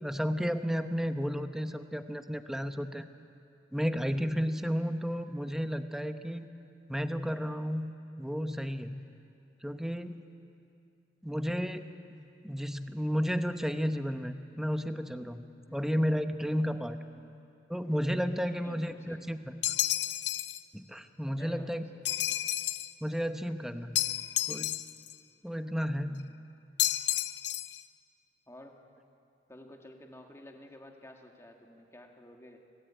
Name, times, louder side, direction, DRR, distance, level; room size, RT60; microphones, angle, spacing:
voice 1, 0.0-3.0 3.7-6.5 6.9-7.9 8.2-8.9 9.6-10.2 11.2-15.4 15.7-17.0 17.7-19.7 20.7-21.8 23.0-24.0 24.5-24.8 25.4-26.2, equal, 5° right, 8 dB, 0.9 m, -32 dB
voice 2, 15.7-16.0 17.2-17.4 18.4-19.6 21.4-22.4 25.9-26.3 28.5-28.8 29.5-32.6, left 1 dB, 15° left, 2 dB, 2.1 m, -52 dB
sound 1, 19.6-20.6 22.1-22.9 24.0-25.1 26.8-27.8, left 14 dB, 65° left, 0.7 m, -31 dB
26.0 x 18.5 x 9.1 m, 2.6 s
head